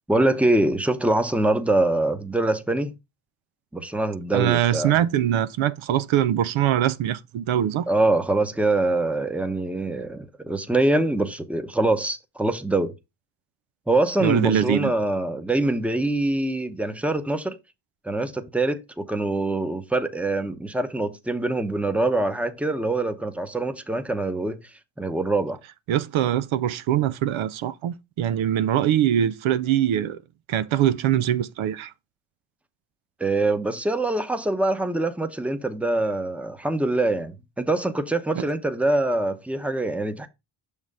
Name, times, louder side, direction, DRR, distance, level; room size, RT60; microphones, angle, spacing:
voice 1, 0.1-2.9 3.7-5.0 7.9-12.9 13.9-17.6 18.0-24.6 25.0-25.6 33.2-40.3, right 2 dB, 5° right, 0.9 m, -24 dB
voice 2, 4.3-7.9 14.2-14.9 25.9-30.2 30.5-31.9 38.4-38.5, right 11 dB, 70° right, 0.6 m, -23 dB
6.3 x 3.7 x 5.3 m
cardioid pair, 75°, 49 cm